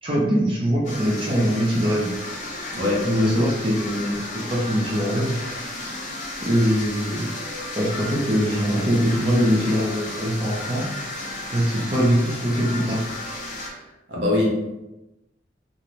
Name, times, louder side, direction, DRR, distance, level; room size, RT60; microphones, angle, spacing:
voice 1, 0.0-2.1 3.0-5.4 6.4-7.3 7.8-10.8 11.5-13.0, equal, 30° right, -5 dB, 0.5 m, -22 dB
sound 1, 0.8-13.7, left 2 dB, 45° left, 0.6 m, -33 dB
voice 2, 2.7-3.1 8.2-8.3 13.7-13.8 14.1-14.9, left 2 dB, 75° right, -4 dB, 0.8 m, -24 dB
2.5 x 2.2 x 3.0 m, 1.0 s
head